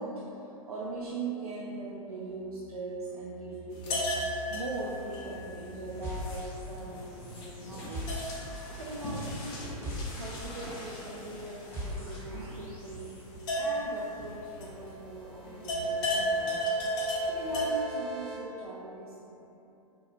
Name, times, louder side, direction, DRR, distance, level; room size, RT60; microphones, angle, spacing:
voice 1, 0.0-8.1 8.7-9.6 10.1-13.2 13.5-16.5 17.0-19.3, right 2 dB, 75° right, -5 dB, 0.5 m, -40 dB
sound 1, 3.7-15.2 15.4-17.8, equal, 35° left, 0.6 m, -35 dB
sound 2, 6.0-6.9 7.2-13.2, equal, 10° left, 0.9 m, -41 dB
sound 3, 13.4-18.4, right 5 dB, 25° right, 0.6 m, -49 dB
5.1 x 2.3 x 2.9 m, 3.0 s
figure-of-eight pair, 105°, 19 cm